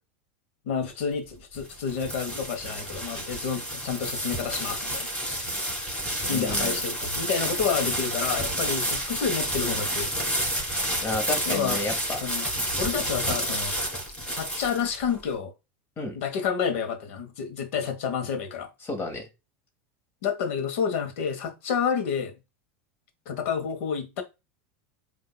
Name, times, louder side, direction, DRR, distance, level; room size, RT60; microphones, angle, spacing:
voice 1, 0.7-5.5 6.3-10.1 11.5-11.8 12.1-12.5 12.8-13.7 14.3-15.5 16.1-18.7 20.2-22.3 23.3-24.2, left 6 dB, 75° left, 1.1 m, -29 dB
sound 1, 1.3-15.2, right 1 dB, 15° left, 3.1 m, -30 dB
voice 2, 6.2-6.8 11.0-12.2 16.0-16.2 18.8-19.2, left 2 dB, 30° left, 1.6 m, -31 dB
7.8 x 2.7 x 2.2 m
supercardioid pair, 120°, 7 cm